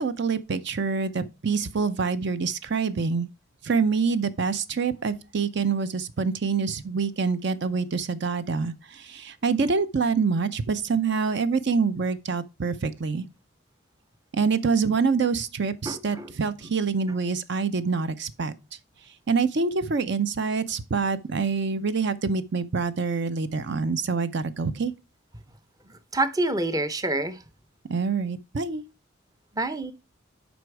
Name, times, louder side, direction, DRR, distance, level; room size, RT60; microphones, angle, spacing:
voice 1, 0.0-3.3 3.6-13.2 14.3-18.5 19.3-24.9 27.9-28.8, right 5 dB, 55° right, 0.6 m, -26 dB
voice 2, 15.9-16.3 26.1-27.4 29.6-29.9, right 2 dB, 20° right, 0.6 m, -27 dB
8.0 x 5.2 x 4.7 m
head